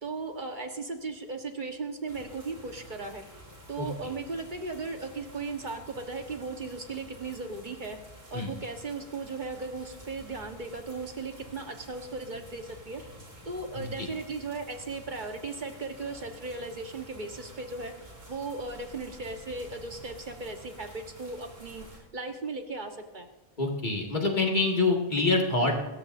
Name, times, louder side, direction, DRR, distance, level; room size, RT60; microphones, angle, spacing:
voice 1, 0.0-3.2 3.7-8.0 8.3-13.0 13.4-17.9 18.3-21.8 22.1-23.3, right 3 dB, 50° right, 5 dB, 1.5 m, -37 dB
sound 1, 2.1-22.0, equal, 75° right, 3.6 m, -50 dB
voice 2, 13.7-14.1 23.6-25.8, left 3 dB, 50° left, 0 dB, 2.3 m, -26 dB
25.5 x 14.0 x 2.7 m, 1.1 s
omnidirectional pair, 1.0 m